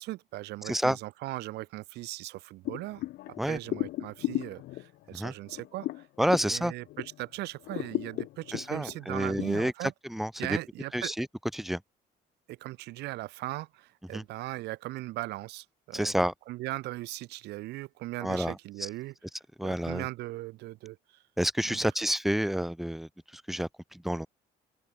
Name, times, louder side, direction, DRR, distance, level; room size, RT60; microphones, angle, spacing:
voice 1, 0.0-3.0 3.4-6.1 6.4-9.9 10.4-11.1 12.5-16.1 16.5-19.1 19.6-21.2 21.6-21.9, right 18 dB, 85° right, 1.7 m, -39 dB
voice 2, 0.6-1.0 3.4-3.6 5.1-5.3 6.2-6.7 8.5-10.6 10.9-11.3 11.5-11.8 14.1-14.2 15.9-16.3 18.2-18.9 19.6-20.1 21.4-24.3, equal, ahead, 0.9 m, -29 dB
sound 1, 2.6-7.3 7.6-9.4, left 16 dB, 75° left, 1.1 m, -36 dB
open air
cardioid pair, 110°, 17 cm